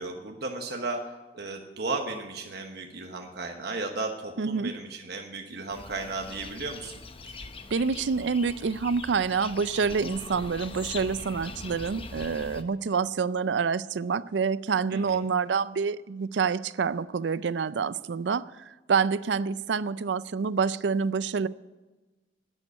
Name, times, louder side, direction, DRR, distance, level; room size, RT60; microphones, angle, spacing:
voice 1, 0.0-7.0 14.9-15.2, right 3 dB, 65° right, 1.2 m, -35 dB
voice 2, 4.4-4.7 7.7-18.4 18.9-21.5, right 5 dB, 90° right, 0.5 m, -27 dB
sound 1, 5.7-12.6, left 3 dB, 30° left, 0.8 m, -42 dB
10.5 x 9.9 x 8.4 m
head